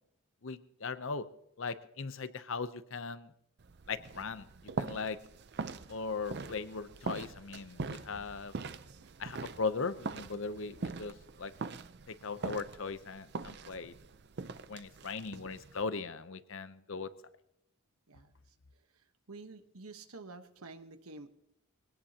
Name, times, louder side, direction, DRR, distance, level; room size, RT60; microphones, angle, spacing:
voice 1, 0.4-1.3 1.6-3.3 3.9-4.5 4.8-5.2 5.9-8.5 9.2-11.1 11.4-11.5 12.1-13.9 14.7-17.1, left 4 dB, 60° left, 13 dB, 0.7 m, -38 dB
sound 1, 3.6-15.8, right 4 dB, 50° right, 0.5 m, -43 dB
voice 2, 19.3-21.3, right 3 dB, 80° right, 8 dB, 1.2 m, -49 dB
22.5 x 18.0 x 2.9 m, 0.79 s
head